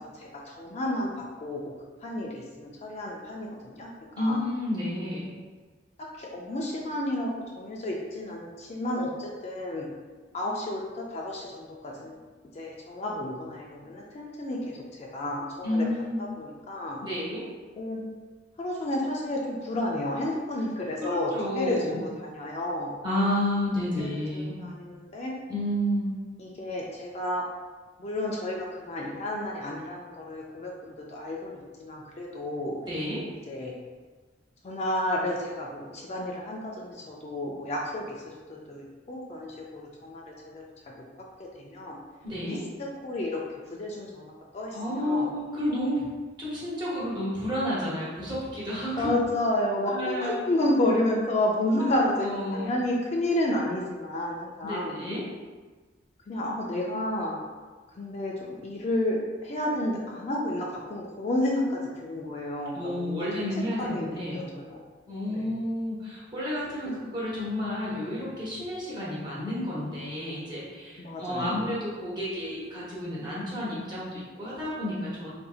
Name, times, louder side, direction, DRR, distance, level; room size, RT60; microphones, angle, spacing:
voice 1, 0.2-1.6 2.0-3.9 4.2-4.4 5.2-5.5 6.2-9.9 10.3-12.2 12.5-15.9 16.2-17.0 17.8-18.0 18.6-23.0 24.0-25.3 26.4-27.4 28.0-32.8 33.5-33.7 34.6-40.6 41.4-42.0 42.5-43.4 43.7-45.3 49.0-55.0 56.3-57.4 57.9-63.3 63.8-64.8 65.3-65.5 71.0-71.5, left 1 dB, 35° left, -2 dB, 0.4 m, -31 dB
voice 2, 4.2-5.2 15.6-16.2 17.0-17.4 21.0-22.0 23.0-24.6 25.5-26.1 32.8-33.2 42.2-42.6 44.7-46.0 46.4-49.1 49.8-50.4 51.8-52.8 54.6-55.2 62.7-64.4 65.1-75.3, left 1 dB, 25° right, -8 dB, 1.1 m, -31 dB
4.0 x 2.6 x 2.4 m, 1.4 s
head